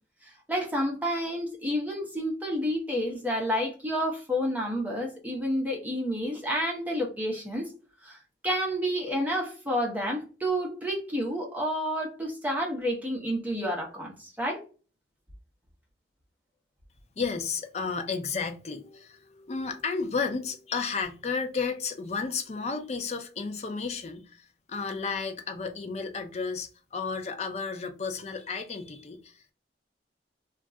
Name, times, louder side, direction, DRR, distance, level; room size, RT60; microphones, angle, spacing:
voice 1, 0.5-7.7 8.0-8.2 8.4-14.6, equal, 10° right, 0.7 m, -30 dB
voice 2, 17.2-29.5, left 5 dB, 35° left, 0.4 m, -33 dB
2.3 x 2.2 x 3.6 m
head